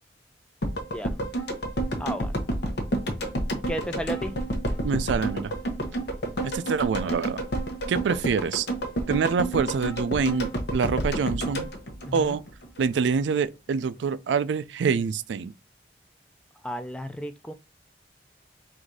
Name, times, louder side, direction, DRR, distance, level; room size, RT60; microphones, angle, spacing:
sound 1, 0.6-12.8 13.1-13.2, right 1 dB, 65° left, 0.9 m, -30 dB
voice 1, 2.0-2.4 3.7-4.4 12.1-12.4 16.6-17.5, equal, 5° left, 0.3 m, -33 dB
voice 2, 4.8-5.5 6.4-7.4 7.9-8.7 9.1-11.7 12.1-12.4 12.8-15.5, right 5 dB, 85° right, 0.3 m, -26 dB
4.0 x 2.6 x 4.7 m
head